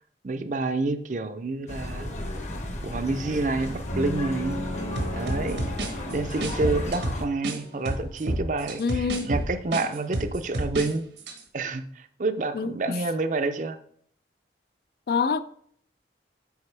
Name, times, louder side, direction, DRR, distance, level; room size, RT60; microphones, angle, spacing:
voice 1, 0.2-2.1 2.8-4.6 5.1-5.7 6.0-11.0 11.5-13.8, right 3 dB, 45° right, 0.5 m, -28 dB
sound 1, 1.7-7.2, left 1 dB, 40° left, 0.9 m, -34 dB
sound 2, 3.9-8.0, left 1 dB, 70° left, 1.8 m, -36 dB
sound 3, 5.0-7.6 7.9-10.9 11.2-11.4, right 1 dB, 80° right, 1.2 m, -29 dB
voice 2, 8.8-9.3 12.5-12.7 15.1-15.4, left 5 dB, 55° left, 0.4 m, -25 dB
8.2 x 5.2 x 3.3 m
head